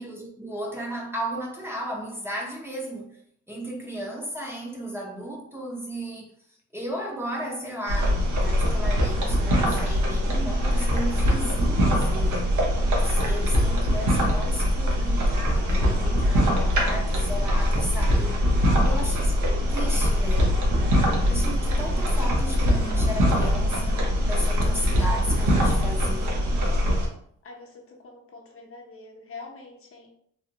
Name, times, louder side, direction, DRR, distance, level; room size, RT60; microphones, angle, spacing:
voice 1, 0.0-3.1 3.5-6.3 6.7-12.6 13.1-18.3 18.8-20.6 21.3-26.3 26.6-26.7, equal, 10° right, 0.7 m, -34 dB
sound 1, 7.9-27.1, equal, 75° right, 1.0 m, -22 dB
voice 2, 18.6-19.1 19.7-19.8 27.4-30.1, left 3 dB, 45° left, 0.8 m, -45 dB
3.4 x 2.5 x 2.8 m
cardioid pair, 90°, 30 cm